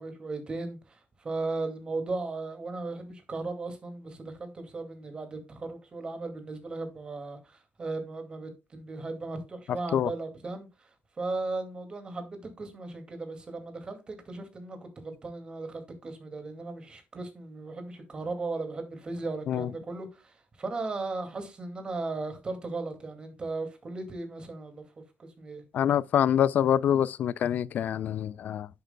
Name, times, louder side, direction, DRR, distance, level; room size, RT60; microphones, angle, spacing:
voice 1, 0.0-10.7 11.2-24.8 25.2-25.6, right 3 dB, 25° right, 2.2 m, -36 dB
voice 2, 25.7-28.7, left 9 dB, 50° left, 0.3 m, -25 dB
9.9 x 7.7 x 2.2 m
cardioid pair, 145°, 4 cm